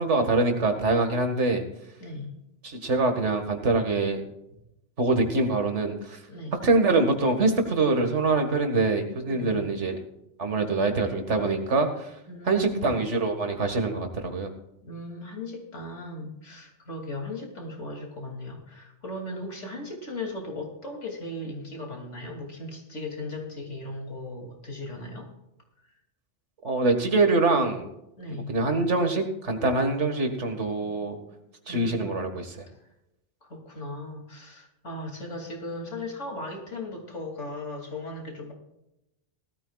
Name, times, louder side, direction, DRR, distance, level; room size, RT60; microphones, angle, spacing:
voice 1, 0.0-1.6 2.6-4.2 5.0-6.2 6.6-10.0 10.4-12.1 12.5-14.5 26.6-27.9 28.5-31.2 31.7-32.6, right 3 dB, 80° right, 5 dB, 2.1 m, -24 dB
voice 2, 2.0-2.4 6.3-6.6 9.3-9.6 12.3-13.0 14.8-25.3 28.2-28.5 30.8-30.9 31.3-31.4 31.7-32.2 33.4-38.5, left 2 dB, 90° left, 2 dB, 3.2 m, -37 dB
18.5 x 13.5 x 2.4 m, 0.88 s
omnidirectional pair, 1.2 m